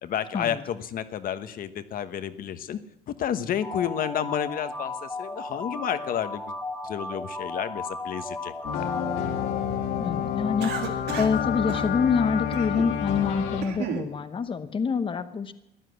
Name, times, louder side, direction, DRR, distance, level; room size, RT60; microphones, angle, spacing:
voice 1, 0.0-2.8 3.2-6.5 6.8-8.8, left 9 dB, 55° left, 11 dB, 1.1 m, -31 dB
sound 1, 3.6-9.2, left 2 dB, 15° left, 1.9 m, -35 dB
sound 2, 8.6-13.6, left 8 dB, 80° left, 2.2 m, -29 dB
voice 2, 10.0-15.5, left 5 dB, 30° left, 10 dB, 0.9 m, -26 dB
Cough, 10.6-11.4 11.7-11.9 12.5-12.9 13.4-14.1, right 8 dB, 80° right, 2.0 m, -34 dB
15.0 x 10.5 x 8.0 m, 0.83 s
cardioid pair, 110°, 17 cm